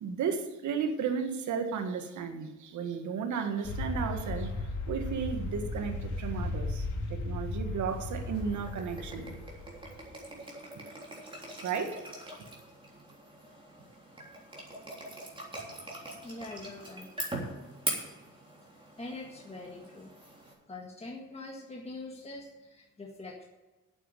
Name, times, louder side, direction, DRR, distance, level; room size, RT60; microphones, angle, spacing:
voice 1, 0.0-9.3 11.6-12.0, right 6 dB, 75° right, 7 dB, 1.6 m, -34 dB
sound 1, 3.6-10.1, left 2 dB, 70° left, 2.2 m, -36 dB
sound 2, 7.9-20.5, right 1 dB, 15° right, 3.6 m, -42 dB
voice 2, 16.2-17.1 19.0-20.1 20.7-23.4, left 2 dB, 20° left, -1 dB, 1.8 m, -43 dB
8.5 x 8.1 x 9.1 m, 1.2 s
cardioid pair, 90°, 30 cm